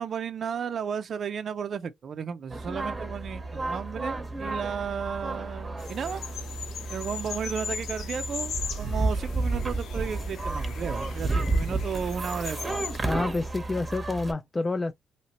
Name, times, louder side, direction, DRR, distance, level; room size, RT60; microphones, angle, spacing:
voice 1, 0.0-6.2 6.9-12.6 13.0-13.2, right 7 dB, 55° right, 0.4 m, -34 dB
sound 1, 2.5-14.3, right 2 dB, 20° right, 0.9 m, -32 dB
sound 2, 5.8-13.0, left 7 dB, 75° left, 0.6 m, -39 dB
voice 2, 13.0-14.9, left 3 dB, 20° left, 0.3 m, -28 dB
2.8 x 2.8 x 2.8 m
cardioid pair, 90°, 0 cm